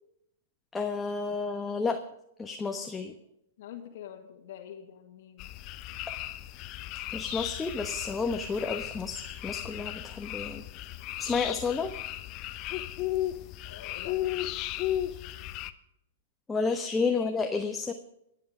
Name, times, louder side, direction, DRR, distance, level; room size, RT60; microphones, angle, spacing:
voice 1, 0.7-2.0 2.4-3.1 7.1-10.6 11.2-12.0 15.1-15.2 16.5-17.9, left 4 dB, 15° left, 5 dB, 1.1 m, -31 dB
voice 2, 3.6-5.5 13.6-14.2 17.1-17.3, left 10 dB, 60° left, 2 dB, 1.9 m, -46 dB
sound 1, 5.4-15.7, left 14 dB, 40° left, 0.9 m, -35 dB
23.5 x 8.1 x 5.1 m, 0.80 s
hypercardioid pair, 110°, 0 cm